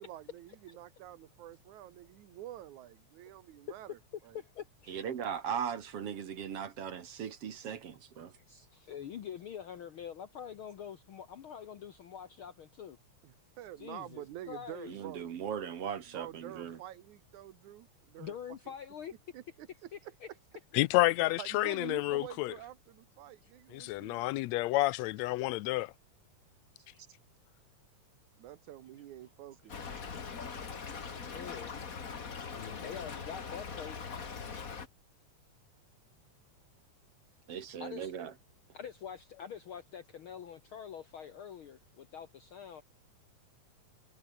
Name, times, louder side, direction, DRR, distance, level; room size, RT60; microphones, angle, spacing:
voice 1, 0.0-4.0 4.2-4.4 13.2-15.4 16.1-18.3 18.7-18.8 19.3-19.9 21.4-24.2 28.4-29.7, right 13 dB, 75° right, 2.6 m, -48 dB
voice 2, 4.3-5.1 8.5-13.0 13.8-15.0 18.2-19.1 19.9-20.3 23.4-23.5 26.8-27.0 31.2-31.8 32.5-34.0 37.8-38.1 38.7-42.8, left 8 dB, 60° left, 1.5 m, -45 dB
voice 3, 4.9-8.4 14.9-16.8 37.5-38.3, right 8 dB, 55° right, 2.3 m, -38 dB
voice 4, 20.7-22.5 23.7-25.9, left 19 dB, 80° left, 1.6 m, -29 dB
Stream / Trickle dribble, 29.7-34.9, left 5 dB, 35° left, 1.8 m, -42 dB
omnidirectional pair, 3.5 m